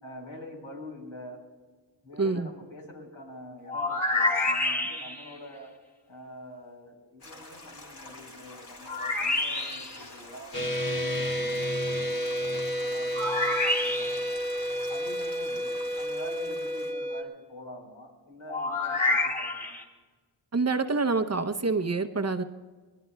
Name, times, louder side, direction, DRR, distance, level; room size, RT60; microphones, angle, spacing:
voice 1, 0.0-1.4 2.0-5.7 6.1-14.5 14.9-19.8, left 1 dB, 90° left, -1 dB, 4.3 m, -46 dB
voice 2, 2.2-2.5 20.5-22.4, right 3 dB, 35° right, 8 dB, 0.7 m, -26 dB
sound 1, 3.7-5.3 8.9-10.0 13.1-14.4 18.5-19.8, left 2 dB, 20° left, 3.0 m, -28 dB
Stream, 7.2-16.9, left 2 dB, 50° left, 3.0 m, -47 dB
sound 2, 10.5-17.2, equal, 70° left, 2.5 m, -30 dB
26.5 x 20.0 x 2.3 m, 1.4 s
wide cardioid pair, 65°, 46 cm